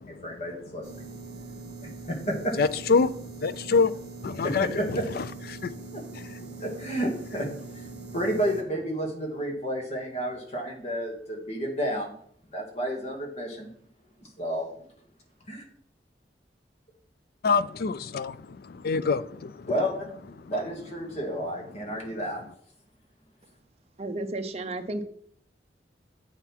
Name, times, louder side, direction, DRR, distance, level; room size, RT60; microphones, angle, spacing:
voice 1, 0.1-1.1 1.8-2.5 4.4-5.1 5.9-6.0 6.6-7.5 7.7-12.2 12.5-13.7 14.2-14.9 15.5-15.6 19.7-22.4, equal, 40° left, 1.9 m, -31 dB
sound 1, 0.8-8.6, right 5 dB, 75° right, 1.2 m, -43 dB
voice 2, 2.6-4.7 5.5-5.9 6.5-6.6 17.4-18.4 18.7-19.7, left 4 dB, 60° left, 0.4 m, -26 dB
voice 3, 24.0-25.0, right 2 dB, 35° right, 0.7 m, -32 dB
8.0 x 5.7 x 4.6 m
head